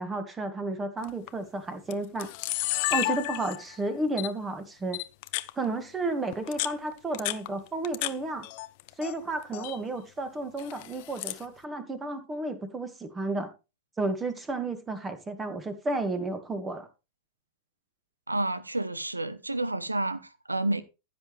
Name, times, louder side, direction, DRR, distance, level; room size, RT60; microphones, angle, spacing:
voice 1, 0.0-2.3 2.9-5.0 5.6-8.5 9.0-13.5 14.0-16.9, right 2 dB, 15° right, 2.1 m, -32 dB
Camera, 1.0-1.3 1.9-2.0 2.2-3.8 4.2-4.3 4.9-5.5 6.3-8.1 8.4-9.1 9.4-9.8 10.6-11.4, left 19 dB, 45° left, 0.8 m, -32 dB
voice 2, 18.3-20.8, right 2 dB, 85° right, 0.9 m, -30 dB
15.5 x 7.9 x 3.4 m
figure-of-eight pair, 90°, 0 cm